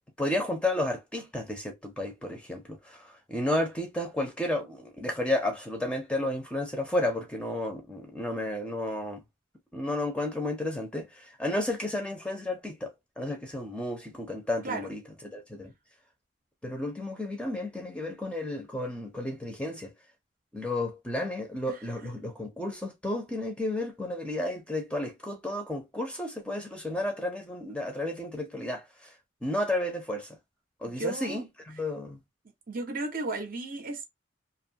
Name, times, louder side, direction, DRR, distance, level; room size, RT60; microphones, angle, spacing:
voice 1, 0.2-9.2 9.7-15.0 15.3-15.7 16.6-19.9 20.5-29.1 29.4-30.3 30.8-32.2, left 1 dB, 5° left, 0.5 m, -32 dB
voice 2, 21.7-22.1 30.9-31.4 32.7-34.0, right 2 dB, 45° right, 0.6 m, -35 dB
2.6 x 2.3 x 2.7 m
head